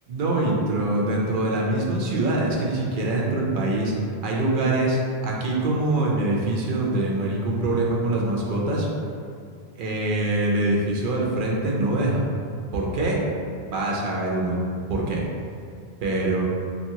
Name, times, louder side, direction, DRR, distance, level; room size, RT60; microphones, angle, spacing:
voice 1, 0.1-3.9 4.2-8.9 9.8-12.2 12.7-13.3 13.7-14.6 14.9-15.2 16.0-16.4, right 2 dB, 60° right, -3 dB, 0.6 m, -24 dB
2.7 x 2.4 x 2.7 m, 2.3 s
omnidirectional pair, 1.1 m